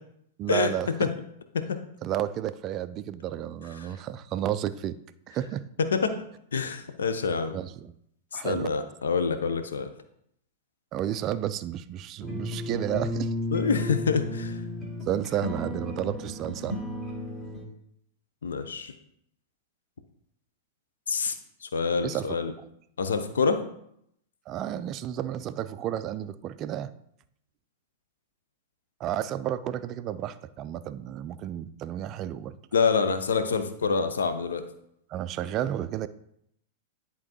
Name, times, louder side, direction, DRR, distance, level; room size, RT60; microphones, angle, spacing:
voice 1, 0.4-1.1 2.0-5.0 5.3-5.6 7.5-7.9 8.3-8.7 10.9-13.3 15.1-16.8 22.0-22.4 24.5-26.9 29.0-32.6 35.1-36.1, right 11 dB, 35° right, 13 dB, 0.3 m, -32 dB
voice 2, 6.5-7.6 8.3-9.9 13.5-14.6 18.4-18.9 21.1-21.3 21.6-22.5 23.0-23.6 32.7-34.6, left 5 dB, 70° left, 9 dB, 0.7 m, -26 dB
sound 1, 12.2-17.7, left 1 dB, 15° left, 1.9 m, -33 dB
10.5 x 3.7 x 3.0 m, 0.73 s
figure-of-eight pair, 95°, 0 cm